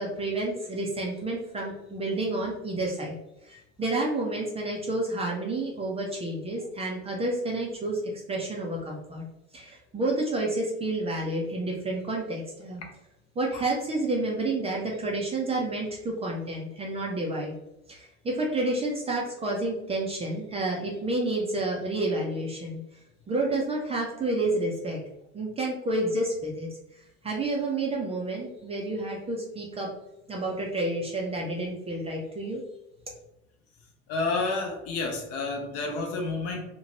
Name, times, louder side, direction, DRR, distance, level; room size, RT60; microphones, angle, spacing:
voice 1, 0.0-3.2 3.4-8.0 8.3-9.2 9.5-12.8 13.4-17.5 17.9-22.8 23.3-25.0 25.3-29.9 30.3-32.6, right 2 dB, 15° right, -2 dB, 0.5 m, -30 dB
voice 2, 34.1-36.7, left 3 dB, 45° left, 2 dB, 0.7 m, -30 dB
2.8 x 2.1 x 2.9 m, 0.86 s
figure-of-eight pair, 70°, 36 cm